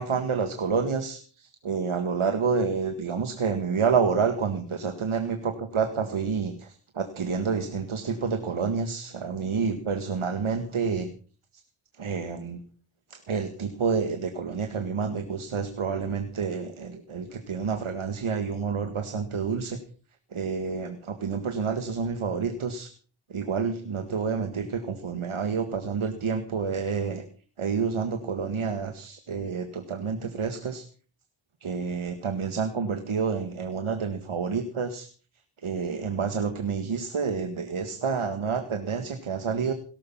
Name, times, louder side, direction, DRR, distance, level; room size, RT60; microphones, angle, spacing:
voice 1, 0.0-11.1 11.5-11.6 11.9-12.6 13.1-19.8 20.3-22.9 23.3-27.2 27.6-30.9 31.6-35.1 35.6-39.7, right 5 dB, 85° right, 8 dB, 1.9 m, -29 dB
17.5 x 13.5 x 5.6 m, 0.42 s
wide cardioid pair, 60°, 48 cm